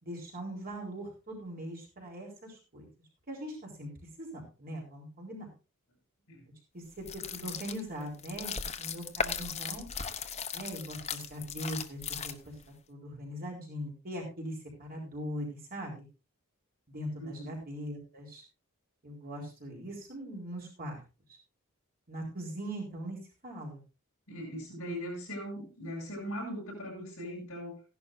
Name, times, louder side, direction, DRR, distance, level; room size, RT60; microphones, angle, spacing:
voice 1, 0.0-2.9 3.3-3.9 4.2-5.5 6.7-9.9 10.5-12.5 12.9-16.1 16.9-18.4 19.0-21.0 22.1-23.8, equal, 45° right, -1 dB, 3.9 m, -41 dB
sound 1, 7.0-12.7, left 6 dB, 30° left, 0.9 m, -37 dB
voice 2, 17.2-17.5 24.3-27.8, equal, 70° left, -2 dB, 6.3 m, -40 dB
16.0 x 11.5 x 2.6 m, 0.30 s
head